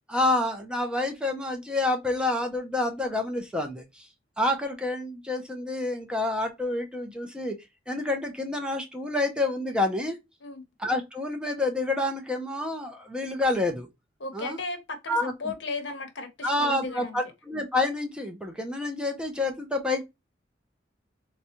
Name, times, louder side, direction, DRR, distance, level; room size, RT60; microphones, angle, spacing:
voice 1, 0.1-3.8 4.4-7.5 7.9-10.2 10.8-13.9 14.3-14.6 15.1-15.3 16.4-20.0, left 2 dB, 5° right, 0.6 m, -28 dB
voice 2, 14.2-17.2, left 3 dB, 70° left, 0.9 m, -35 dB
4.0 x 2.2 x 2.9 m
head